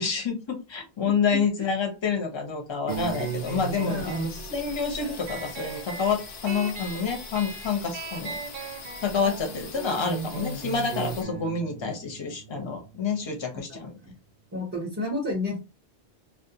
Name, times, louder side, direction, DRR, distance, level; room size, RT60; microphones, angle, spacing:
voice 1, 0.0-8.4 9.0-13.9, left 5 dB, 30° left, 3 dB, 0.6 m, -28 dB
voice 2, 1.0-1.7 3.9-4.1 13.7-14.1 14.5-15.6, left 2 dB, 20° right, -3 dB, 0.6 m, -32 dB
sound 1, 2.9-11.2, left 4 dB, 75° left, 0.9 m, -42 dB
sound 2, 2.9-14.0, right 5 dB, 60° right, 0.6 m, -37 dB
2.4 x 2.1 x 2.7 m, 0.27 s
omnidirectional pair, 1.1 m